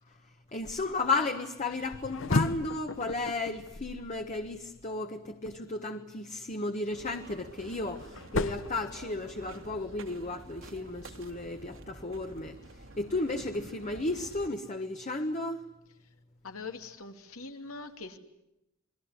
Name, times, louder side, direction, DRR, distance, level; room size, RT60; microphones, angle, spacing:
voice 1, 0.5-15.6, left 2 dB, 35° left, 5 dB, 1.3 m, -34 dB
sound 1, 1.7-4.9 7.1-9.6, left 2 dB, 65° left, 1.0 m, -35 dB
sound 2, 6.9-14.5, right 2 dB, 65° right, 2.3 m, -49 dB
voice 2, 16.4-18.2, left 4 dB, 85° left, 6 dB, 2.7 m, -42 dB
28.5 x 21.0 x 9.7 m, 0.87 s
head